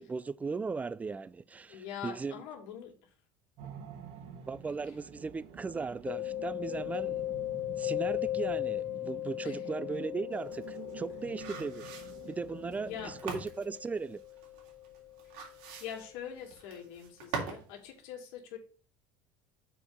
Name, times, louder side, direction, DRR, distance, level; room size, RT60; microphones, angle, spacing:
voice 1, 0.0-2.4 4.5-7.2 7.8-11.8 12.3-14.2, right 4 dB, 15° right, 0.4 m, -37 dB
voice 2, 1.7-2.9 9.4-9.6 12.8-13.1 15.8-18.6, left 9 dB, 80° left, 2.7 m, -43 dB
sound 1, 3.6-13.2, right 7 dB, 60° right, 2.2 m, -49 dB
Mallet percussion, 6.1-15.6, left 15 dB, 55° left, 0.6 m, -38 dB
sound 2, 10.3-17.7 18.0-18.1, right 5 dB, 80° right, 3.1 m, -43 dB
7.0 x 4.6 x 6.9 m
cardioid pair, 125°, 11 cm